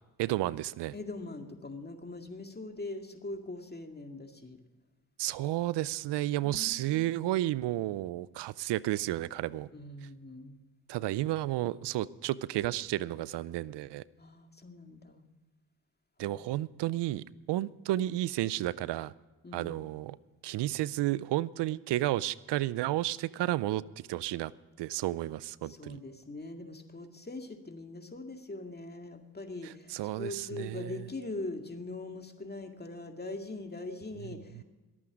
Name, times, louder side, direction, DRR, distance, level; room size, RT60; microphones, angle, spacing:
voice 1, 0.2-0.9 5.2-9.7 10.9-14.0 16.2-19.1 19.5-20.2 20.4-23.8 24.1-24.5 24.8-26.0 29.6-31.0 34.6-34.7, right 15 dB, 85° right, 20 dB, 0.5 m, -32 dB
voice 2, 0.9-4.6 6.4-7.1 9.7-10.6 14.2-15.2 16.2-16.5 19.4-19.7 25.6-34.6, left 2 dB, 25° left, 5 dB, 2.1 m, -42 dB
22.0 x 8.6 x 5.0 m, 1.2 s
cardioid pair, 65°, 40 cm